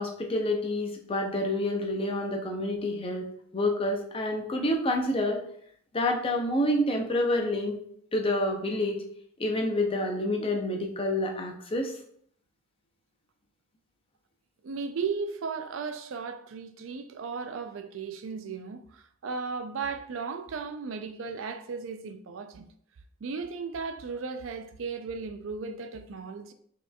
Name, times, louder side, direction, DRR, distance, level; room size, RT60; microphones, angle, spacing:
voice 1, 0.0-3.3 3.5-5.4 5.9-7.8 8.1-9.0 9.4-11.9, left 1 dB, 25° left, 0.5 m, -28 dB
voice 2, 14.6-22.7 23.2-26.5, right 5 dB, 70° right, 0.4 m, -36 dB
5.3 x 2.9 x 2.3 m
head